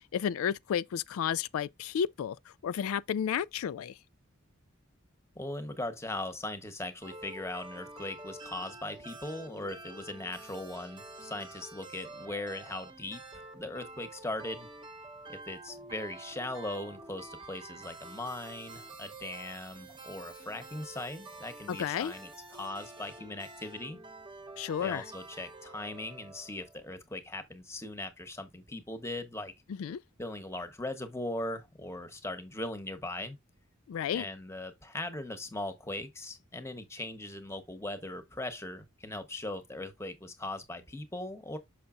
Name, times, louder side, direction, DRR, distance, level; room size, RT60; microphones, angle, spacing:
voice 1, 0.0-2.4 2.6-4.0 21.7-22.1 24.6-25.0 29.8-30.0 33.9-34.3, left 8 dB, 80° left, 0.3 m, -32 dB
voice 2, 5.3-14.7 15.3-24.0 24.8-29.5 30.2-33.4 34.1-41.6, left 2 dB, 10° left, 1.0 m, -39 dB
sound 1, 7.0-26.9, right 2 dB, 25° right, 0.9 m, -48 dB
6.5 x 5.8 x 2.5 m
head